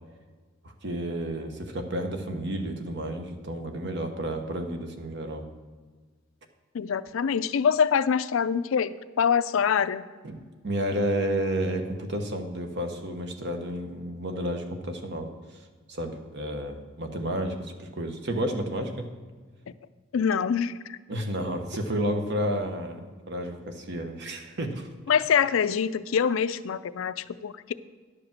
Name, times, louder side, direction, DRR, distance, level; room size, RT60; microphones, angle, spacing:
voice 1, 0.6-5.5 10.2-15.3 15.9-19.0 21.1-24.9, right 1 dB, 55° right, 5 dB, 1.1 m, -31 dB
voice 2, 6.7-10.0 20.1-21.0 25.1-27.7, left 7 dB, 75° left, 14 dB, 0.4 m, -25 dB
11.0 x 5.0 x 7.3 m, 1.4 s
head